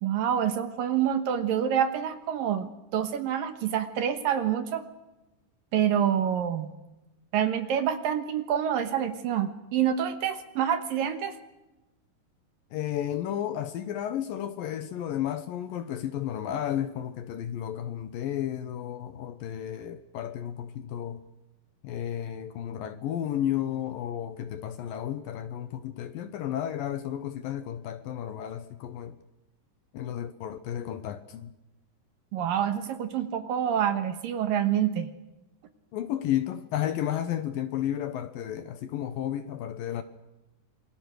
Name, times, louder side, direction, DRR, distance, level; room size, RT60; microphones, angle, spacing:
voice 1, 0.0-4.9 5.7-6.7 7.3-11.3 32.3-35.1, right 9 dB, 65° right, 2.7 m, -27 dB
voice 2, 12.7-21.2 21.8-29.2 29.9-31.5 35.9-40.0, left 11 dB, 70° left, 2.4 m, -32 dB
28.0 x 22.0 x 6.5 m
omnidirectional pair, 4.8 m